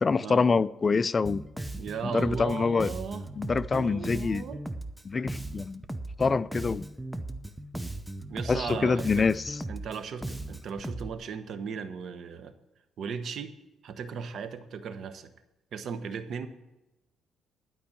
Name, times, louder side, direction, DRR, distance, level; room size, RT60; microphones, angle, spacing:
voice 1, 0.0-1.4 2.1-2.9 3.4-4.4 5.0-5.8 6.2-6.8 8.5-9.6, left 4 dB, 30° left, 0.3 m, -25 dB
Bass guitar, 1.2-11.1, right 1 dB, 5° right, 0.7 m, -37 dB
voice 2, 1.7-3.3 3.7-4.6 8.3-9.3 9.7-12.5 13.0-13.5 13.8-15.3 15.7-16.5, right 6 dB, 60° right, 1.0 m, -37 dB
11.5 x 5.3 x 8.8 m
cardioid pair, 110°, 0 cm